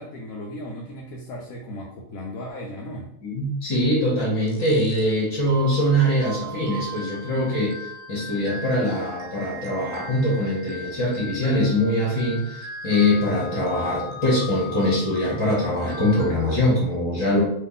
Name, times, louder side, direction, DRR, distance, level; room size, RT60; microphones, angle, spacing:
voice 1, 0.0-3.1, left 1 dB, 90° left, -2 dB, 1.0 m, -36 dB
voice 2, 3.2-7.8 8.1-17.4, left 1 dB, 25° left, -6 dB, 0.8 m, -23 dB
sound 1, 4.5-5.0 5.5-16.3, left 1 dB, 60° right, 0.7 m, -38 dB
2.9 x 2.4 x 3.8 m, 0.76 s
omnidirectional pair, 1.4 m